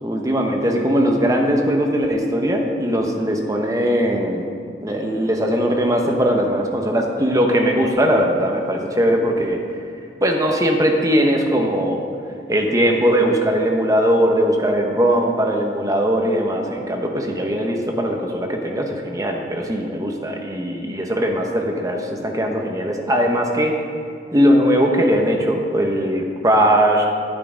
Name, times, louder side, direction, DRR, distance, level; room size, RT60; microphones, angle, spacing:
voice 1, 0.0-4.5 4.8-9.6 10.2-12.0 12.5-23.8 24.3-27.0, equal, 20° right, 1 dB, 1.0 m, -19 dB
10.5 x 9.4 x 5.1 m, 2.3 s
head